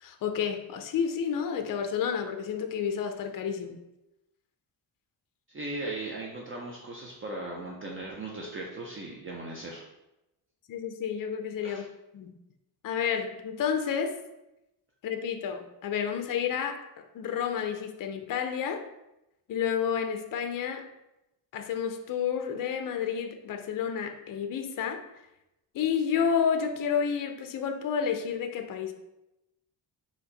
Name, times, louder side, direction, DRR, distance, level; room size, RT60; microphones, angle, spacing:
voice 1, 0.0-3.8 10.7-11.8 12.1-12.3 12.8-14.1 15.0-18.8 19.5-20.9 21.5-25.0 25.7-28.9, left 7 dB, 50° left, 6 dB, 0.5 m, -30 dB
voice 2, 5.5-9.8 11.6-11.8, right 2 dB, 30° right, -2 dB, 0.5 m, -38 dB
4.4 x 2.9 x 3.9 m, 0.92 s
wide cardioid pair, 155°, 42 cm